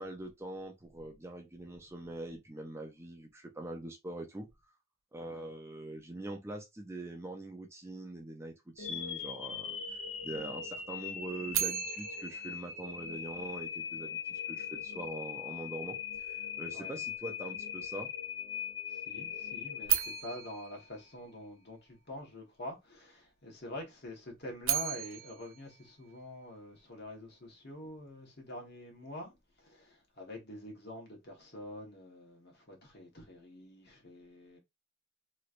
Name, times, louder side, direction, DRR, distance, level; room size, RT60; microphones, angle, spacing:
voice 1, 0.0-4.5 5.1-18.1, right 2 dB, 15° right, 0.5 m, -43 dB
sound 1, 8.8-20.9, left 7 dB, 75° left, 0.9 m, -40 dB
sound 2, 11.5-13.7 19.8-22.0 24.4-26.8, right 12 dB, 80° right, 0.5 m, -36 dB
voice 2, 16.7-17.0 18.9-34.6, left 1 dB, 55° left, 1.3 m, -46 dB
3.1 x 3.1 x 2.5 m
head